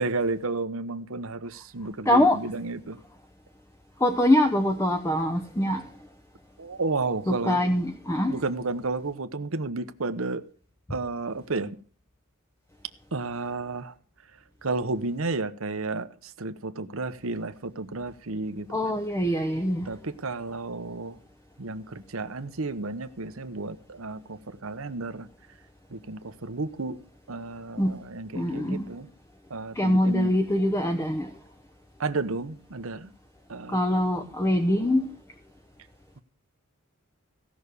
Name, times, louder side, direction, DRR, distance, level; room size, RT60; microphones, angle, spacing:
voice 1, 0.0-3.0 6.6-7.6 8.3-10.4 10.9-11.8 13.1-13.9 14.6-19.0 19.9-21.2 21.6-25.3 25.9-27.0 27.3-29.1 29.5-30.3 32.0-33.1 33.5-33.9 34.2-34.3, right 3 dB, 75° right, 1.0 m, -32 dB
voice 2, 2.1-2.4 4.0-5.8 7.3-8.4 18.7-19.9 27.8-27.9 28.3-28.9 29.8-31.3 33.7-35.0, left 1 dB, 15° left, 0.8 m, -23 dB
16.0 x 6.2 x 6.8 m
head